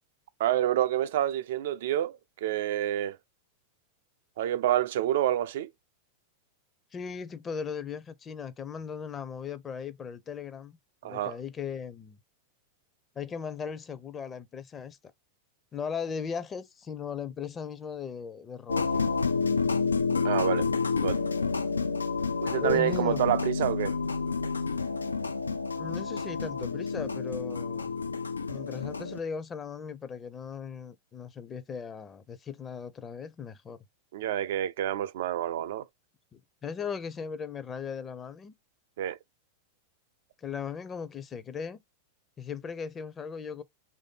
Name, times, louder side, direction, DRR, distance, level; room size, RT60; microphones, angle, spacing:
voice 1, 0.4-3.2 4.4-5.7 11.0-11.4 20.2-20.7 21.0-21.2 22.4-23.9 34.1-35.9 39.0-39.2, right 12 dB, 55° right, 0.3 m, -28 dB
voice 2, 6.9-10.8 11.0-12.2 13.2-15.0 15.7-19.2 22.6-23.2 25.7-27.9 28.5-33.8 36.3-38.5 40.4-41.8 42.4-43.6, left 6 dB, 20° left, 0.5 m, -37 dB
sound 1, 18.7-29.2, left 4 dB, 75° left, 0.3 m, -29 dB
3.2 x 2.6 x 3.9 m
figure-of-eight pair, 90°, 0 cm